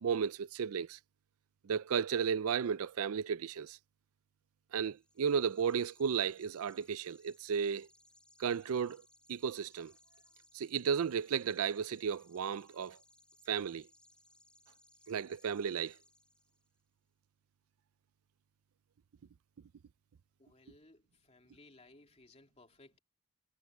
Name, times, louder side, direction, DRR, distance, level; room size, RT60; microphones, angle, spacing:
voice 1, 0.0-1.0 1.6-3.8 4.7-7.9 8.4-9.0 9.3-9.9 10.5-13.0 13.5-13.9 15.1-15.9, right 7 dB, 70° right, 0.4 m, -34 dB
sound 1, 4.9-16.8, left 2 dB, 5° left, 5.9 m, -66 dB
voice 2, 20.4-23.0, left 2 dB, 30° left, 2.7 m, -61 dB
head